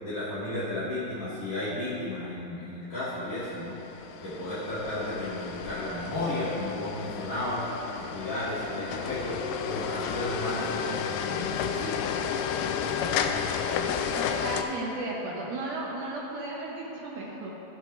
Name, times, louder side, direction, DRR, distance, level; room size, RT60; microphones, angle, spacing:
voice 1, 0.0-3.7 4.2-7.6 7.9-12.1 13.1-13.5, left 1 dB, 35° left, -13 dB, 1.4 m, -33 dB
sound 1, 3.5-14.6, left 7 dB, 90° left, 1.9 m, -32 dB
voice 2, 14.2-17.5, right 2 dB, 70° right, -4 dB, 2.2 m, -35 dB
17.5 x 6.4 x 2.6 m, 3.0 s
omnidirectional pair, 4.3 m